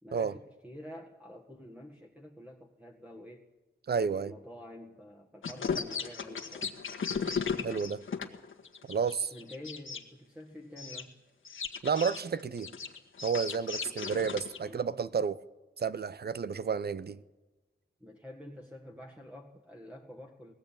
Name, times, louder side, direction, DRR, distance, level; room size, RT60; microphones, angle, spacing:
voice 1, 0.0-3.5 4.0-6.7 9.3-11.2 14.6-15.1 18.0-20.5, left 1 dB, 5° right, 1.8 m, -48 dB
voice 2, 3.9-4.3 7.6-8.0 8.9-9.3 11.8-12.7 13.2-15.4 15.8-17.2, right 6 dB, 50° right, 0.7 m, -31 dB
sound 1, 5.4-10.0 10.8-11.0 11.4-14.6, left 5 dB, 75° left, 1.7 m, -36 dB
20.5 x 15.5 x 8.7 m
wide cardioid pair, 100°, 21 cm